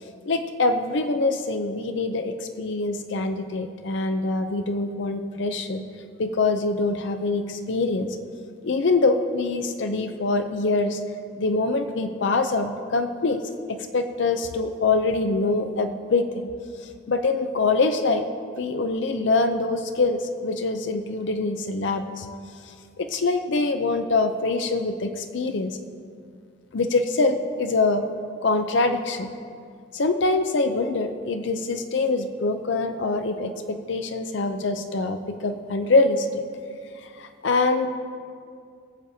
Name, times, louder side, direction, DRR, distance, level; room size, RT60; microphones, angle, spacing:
voice 1, 0.3-5.8 6.2-8.1 8.6-11.0 11.4-13.4 13.7-16.5 17.1-18.2 18.6-22.3 23.0-25.8 26.7-28.1 28.4-29.3 29.9-36.4 37.2-37.9, left 3 dB, 65° left, 7 dB, 0.5 m, -24 dB
20.0 x 7.5 x 2.7 m, 2.2 s
head